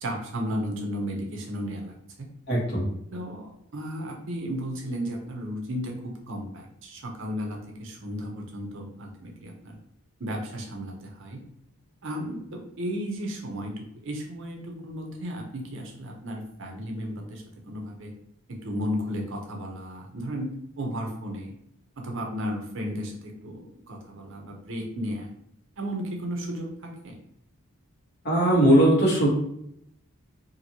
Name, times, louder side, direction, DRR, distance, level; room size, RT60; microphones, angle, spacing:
voice 1, 0.0-2.3 3.1-9.8 10.2-11.4 12.0-18.1 18.5-21.5 22.0-25.3 25.8-27.1, equal, 60° right, 1 dB, 0.6 m, -34 dB
voice 2, 2.5-2.9 28.2-29.3, right 1 dB, 50° left, -5 dB, 1.1 m, -19 dB
2.8 x 2.5 x 2.8 m, 0.75 s
head